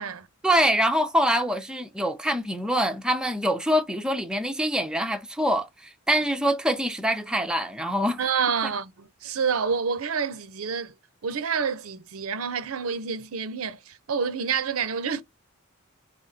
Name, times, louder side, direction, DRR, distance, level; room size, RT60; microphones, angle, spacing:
voice 1, 0.4-8.2, equal, 5° right, 0.4 m, -24 dB
voice 2, 8.2-10.9 11.2-15.2, right 6 dB, 85° right, 0.6 m, -28 dB
4.2 x 3.4 x 2.6 m
head